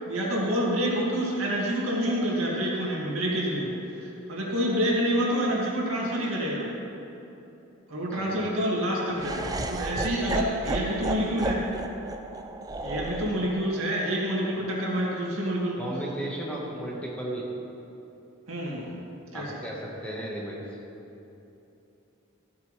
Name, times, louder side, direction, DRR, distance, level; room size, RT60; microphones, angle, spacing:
voice 1, 0.1-3.7 4.3-6.7 7.9-11.6 12.8-15.8 18.5-18.9 19.3-19.5, equal, 80° right, -4 dB, 2.1 m, -27 dB
Laughter, 9.2-15.3, right 2 dB, 15° right, 0.4 m, -34 dB
voice 2, 15.8-17.5 19.3-20.6, right 1 dB, 5° left, -4 dB, 1.3 m, -35 dB
13.5 x 8.4 x 3.3 m, 2.9 s
head